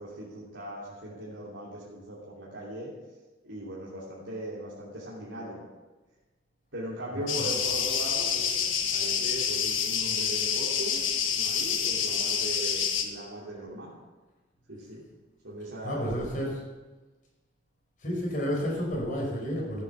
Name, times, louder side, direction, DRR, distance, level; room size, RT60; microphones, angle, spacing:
voice 1, 0.0-2.9 3.4-5.6 6.7-13.9 14.7-15.1 15.4-16.3, right 1 dB, 70° right, -7 dB, 3.1 m, -39 dB
voice 2, 7.1-7.6 15.8-16.5 18.0-19.8, equal, 45° left, -2 dB, 5.3 m, -31 dB
sound 1, 7.3-13.0, left 7 dB, 85° left, 1.4 m, -28 dB
14.0 x 9.1 x 7.0 m, 1.2 s
head